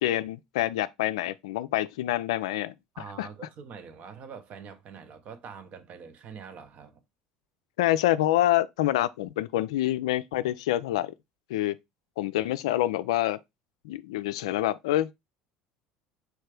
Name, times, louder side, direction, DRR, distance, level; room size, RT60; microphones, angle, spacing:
voice 1, 0.0-3.3 7.8-11.1 11.5-11.8 12.2-13.4 13.8-15.1, left 14 dB, 70° left, 0.3 m, -27 dB
voice 2, 2.9-7.0, right 6 dB, 45° right, 0.8 m, -44 dB
4.6 x 3.2 x 3.3 m
hypercardioid pair, 70°, 3 cm